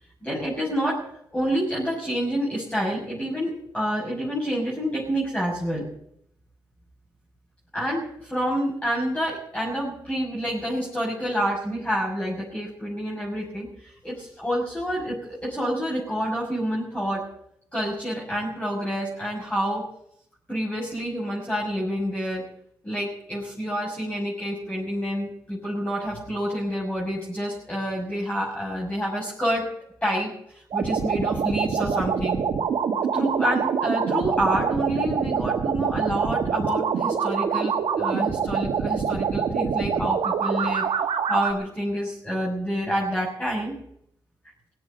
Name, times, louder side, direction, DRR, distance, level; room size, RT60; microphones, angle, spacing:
voice 1, 0.2-5.9 7.7-17.3 17.7-19.9 20.5-22.5 22.8-29.7 30.0-32.4 33.1-40.9 41.3-43.8, equal, 10° left, -5 dB, 6.5 m, -28 dB
sound 1, 30.7-41.5, right 6 dB, 70° right, 2.1 m, -25 dB
17.5 x 8.5 x 8.9 m, 0.72 s
cardioid pair, 65°, 9 cm